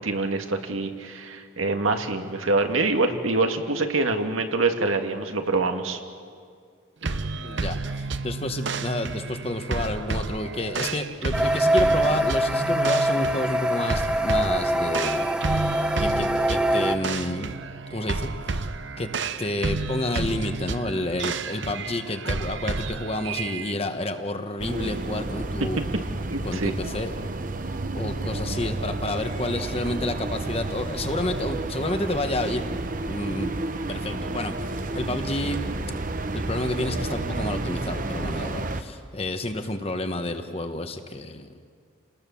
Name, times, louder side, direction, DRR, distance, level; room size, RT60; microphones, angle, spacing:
voice 1, 0.0-6.0 26.3-26.7, right 3 dB, 85° right, 5 dB, 1.9 m, -25 dB
sound 1, 7.0-23.7, right 3 dB, 65° right, 0.9 m, -31 dB
voice 2, 7.4-15.3 16.0-17.5 17.9-18.7 19.0-19.1 19.4-25.8 26.4-27.1 28.0-32.6 33.1-35.6 36.3-41.5, left 1 dB, 30° left, 7 dB, 1.2 m, -30 dB
sound 2, 11.3-17.0, right 1 dB, 5° right, 0.8 m, -24 dB
sound 3, 24.6-38.8, right 2 dB, 40° right, 0.9 m, -31 dB
29.0 x 19.5 x 7.1 m, 2.1 s
head